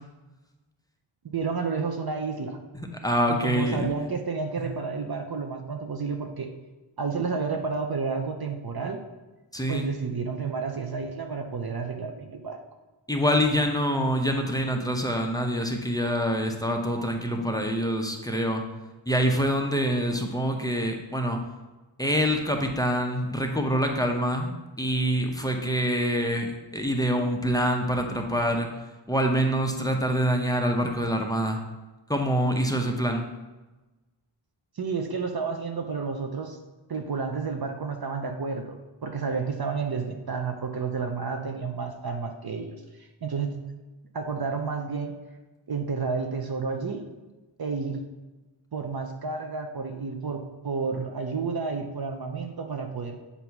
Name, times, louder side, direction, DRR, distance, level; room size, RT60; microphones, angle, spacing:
voice 1, 1.3-2.6 3.3-6.5 7.0-9.0 9.7-12.6 34.8-36.6 36.9-43.6 44.1-45.2 45.7-47.1 47.6-48.0 48.7-53.2, right 5 dB, 50° right, 5 dB, 0.6 m, -31 dB
voice 2, 2.7-3.8 4.6-4.7 9.5-9.9 13.1-18.6 19.1-21.4 22.0-24.5 24.8-28.7 29.1-31.6 32.1-33.2, equal, 10° left, 3 dB, 0.7 m, -25 dB
7.8 x 2.8 x 5.7 m, 1.1 s
wide cardioid pair, 95°, 49 cm